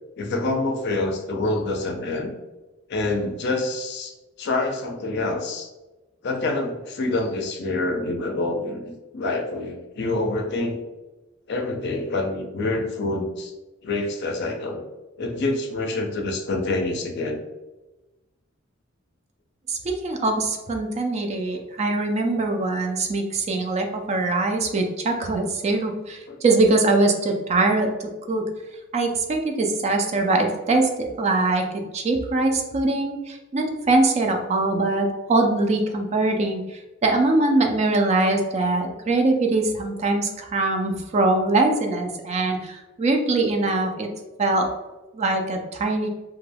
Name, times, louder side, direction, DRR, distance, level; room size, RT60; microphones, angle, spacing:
voice 1, 0.2-2.3 2.9-5.7 6.2-8.8 9.1-10.8 11.5-13.5 13.8-14.8 15.2-17.4 26.3-26.4, left 2 dB, 55° left, 3 dB, 0.4 m, -26 dB
voice 2, 19.7-28.5 28.9-31.7 31.9-44.1 44.4-44.7 45.1-46.1, right 2 dB, 35° right, 3 dB, 0.3 m, -22 dB
2.2 x 2.2 x 3.2 m, 1.1 s
head